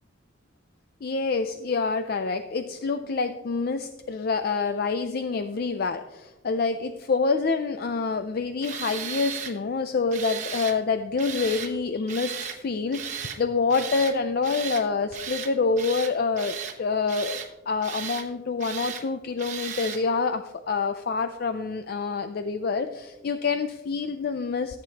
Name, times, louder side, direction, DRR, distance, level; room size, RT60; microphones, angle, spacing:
voice 1, 1.0-24.8, left 4 dB, 55° left, 9 dB, 0.4 m, -27 dB
Tools, 8.6-9.5 10.1-10.8 11.2-11.7 12.1-12.6 12.9-13.4 13.7-14.2 14.4-14.8 15.1-15.5 15.8-16.8 17.1-17.5 17.8-18.3 18.6-19.0 19.4-20.0, right 8 dB, 40° right, 1.0 m, -35 dB
14.0 x 8.2 x 2.9 m, 1.1 s
head